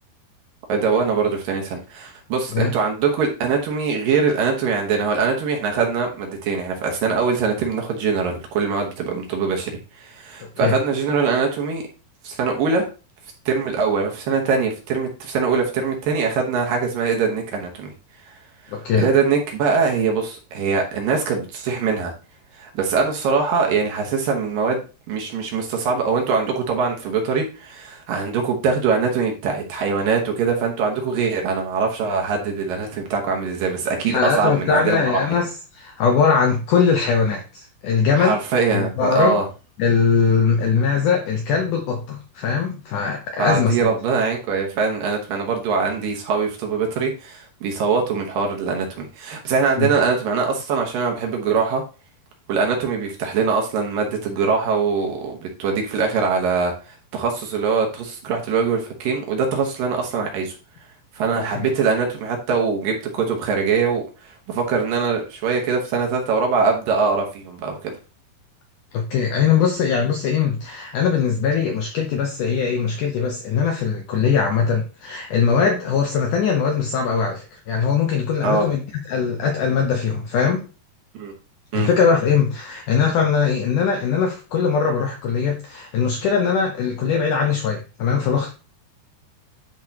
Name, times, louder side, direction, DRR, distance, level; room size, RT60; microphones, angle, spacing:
voice 1, 0.7-11.8 12.2-12.9 13.5-17.9 18.3-18.4 18.6-22.1 22.5-35.4 38.2-39.4 43.4-51.8 52.5-60.6 61.1-67.9 78.4-78.7 81.1-81.3 81.7-81.9, right 5 dB, 65° right, 2 dB, 2.6 m, -22 dB
voice 2, 18.7-19.1 34.1-38.4 38.7-39.4 39.8-43.8 49.8-49.9 61.4-61.7 68.9-78.8 79.1-80.6 81.7-88.5, left 6 dB, 75° left, 3 dB, 1.8 m, -21 dB
10.5 x 4.7 x 2.9 m, 0.33 s
omnidirectional pair, 4.6 m